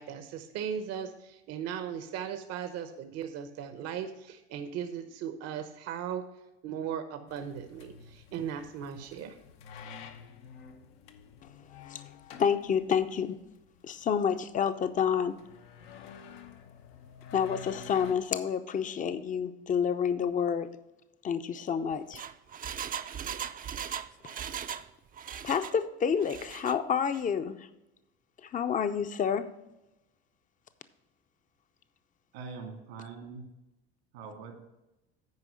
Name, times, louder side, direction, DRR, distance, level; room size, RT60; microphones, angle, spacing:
voice 1, 0.0-6.2 6.6-9.4, right 8 dB, 55° right, 8 dB, 0.9 m, -37 dB
sound 1, 7.3-18.2, left 7 dB, 75° left, 0.9 m, -50 dB
voice 2, 12.4-13.4 13.8-15.4 17.3-20.7 21.2-22.2 25.4-27.7 28.4-29.5, left 7 dB, 25° left, 11 dB, 0.6 m, -29 dB
Engine, 21.9-24.9 25.1-25.8 26.2-26.8 27.1-27.2, right 8 dB, 30° right, 0.5 m, -38 dB
voice 3, 32.3-33.4 34.1-34.6, right 4 dB, 85° right, 2 dB, 2.5 m, -43 dB
9.6 x 4.8 x 6.2 m, 0.94 s
hypercardioid pair, 80°, 31 cm